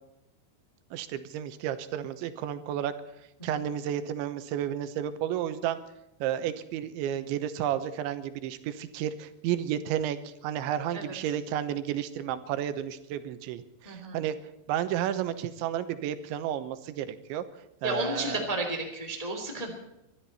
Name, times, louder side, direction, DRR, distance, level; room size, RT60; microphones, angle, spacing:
voice 1, 0.9-2.9 3.4-5.8 6.2-14.4 14.7-17.4 17.8-18.5, right 10 dB, 90° right, 11 dB, 3.3 m, -32 dB
voice 2, 13.8-14.2 17.8-19.7, right 1 dB, 15° left, 3 dB, 1.4 m, -32 dB
23.5 x 13.0 x 4.2 m, 0.88 s
omnidirectional pair, 5.2 m